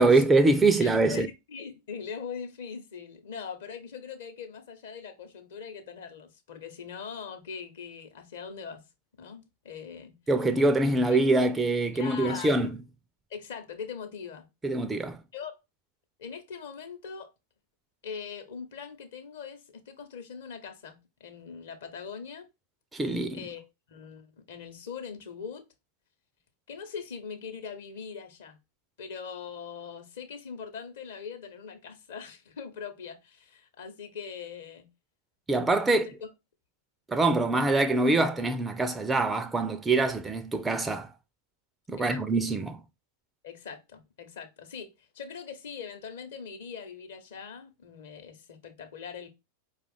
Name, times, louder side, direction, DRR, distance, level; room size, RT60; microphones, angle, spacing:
voice 1, 0.0-1.3 10.3-12.8 14.6-15.2 22.9-23.4 35.5-36.1 37.1-41.1 41.9-42.8, right 2 dB, 10° right, 0.4 m, -24 dB
voice 2, 0.8-8.8 9.2-10.2 11.9-12.7 13.3-14.4 15.3-15.5 16.2-17.3 18.0-22.5 23.3-23.6 23.9-25.6 26.7-28.6 29.0-34.9 35.9-36.0 42.0-42.2 43.4-44.9 45.1-49.3, left 6 dB, 60° left, 0.8 m, -41 dB
4.7 x 2.3 x 3.3 m
figure-of-eight pair, 90°, 0 cm